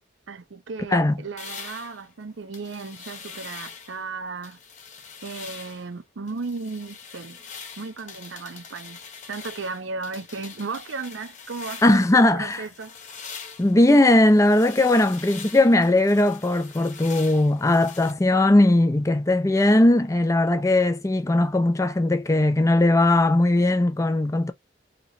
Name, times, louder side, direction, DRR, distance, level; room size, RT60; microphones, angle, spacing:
voice 1, 0.3-4.6 5.2-7.4 7.8-9.0 9.3-13.0, right 4 dB, 85° right, 0.6 m, -35 dB
voice 2, 0.9-1.3 11.8-12.7 13.6-24.5, left 1 dB, 15° left, 0.4 m, -19 dB
sound 1, 1.4-4.0 4.4-5.9 6.3-12.2 12.5-18.1, left 6 dB, 40° left, 0.8 m, -43 dB
2.9 x 2.9 x 2.5 m
head